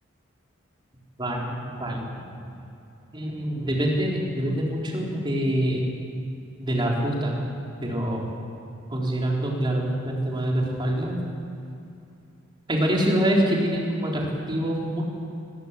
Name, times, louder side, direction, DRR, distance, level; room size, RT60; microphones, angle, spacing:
voice 1, 1.2-2.1 2.4-2.5 3.1-5.9 6.6-7.4 7.8-8.3 8.9-11.2 12.7-15.0, right 1 dB, 20° right, -2 dB, 4.1 m, -25 dB
20.5 x 20.0 x 8.4 m, 2.6 s
head